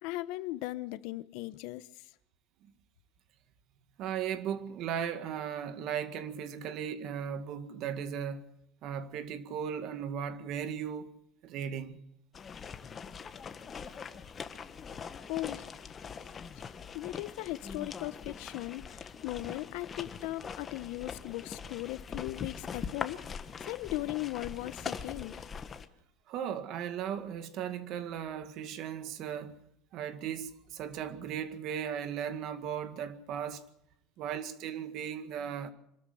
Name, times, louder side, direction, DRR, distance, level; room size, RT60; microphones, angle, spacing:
voice 1, 0.0-1.9 15.3-15.7 16.9-23.2 23.6-25.5, left 18 dB, 70° left, 0.9 m, -38 dB
voice 2, 4.0-8.4 8.8-11.1 11.4-12.0 26.3-29.6 29.9-33.6 34.2-35.7, right 8 dB, 50° right, 1.9 m, -37 dB
sound 1, 12.3-25.9, left 6 dB, 25° left, 1.3 m, -42 dB
25.5 x 13.0 x 7.9 m
cardioid pair, 145°, 0 cm